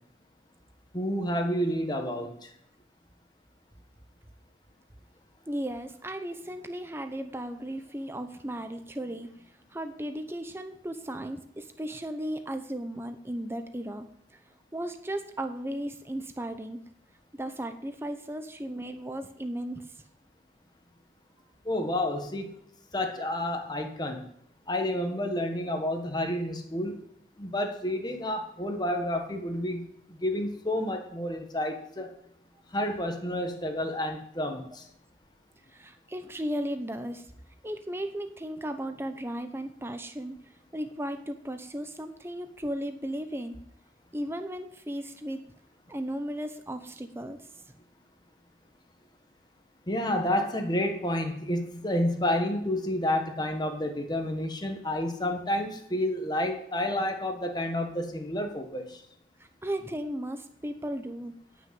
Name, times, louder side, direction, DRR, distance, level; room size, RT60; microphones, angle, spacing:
voice 1, 0.9-2.5 21.6-22.5 22.9-24.3 24.7-27.0 27.4-32.1 32.7-34.9 49.9-59.0, left 1 dB, 25° left, 5 dB, 1.5 m, -30 dB
voice 2, 5.5-9.3 9.7-14.4 14.7-16.8 17.3-19.9 35.7-37.3 37.6-40.4 40.7-43.6 44.1-45.5 45.9-47.5 59.4-61.3, right 1 dB, 15° right, 7 dB, 0.8 m, -35 dB
17.5 x 6.3 x 7.7 m, 0.71 s
head